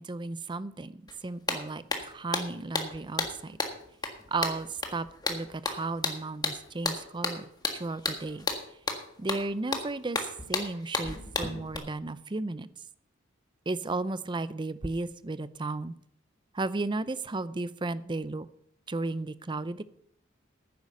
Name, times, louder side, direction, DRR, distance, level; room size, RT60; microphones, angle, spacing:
voice 1, 0.0-3.6 4.3-8.5 9.2-12.7 13.7-15.9 16.5-18.5 18.9-19.8, right 3 dB, 25° right, 15 dB, 0.5 m, -34 dB
sound 1, 1.1-1.2 1.5-11.8, left 3 dB, 20° left, 1.5 m, -33 dB
10.0 x 9.5 x 6.6 m, 0.68 s
head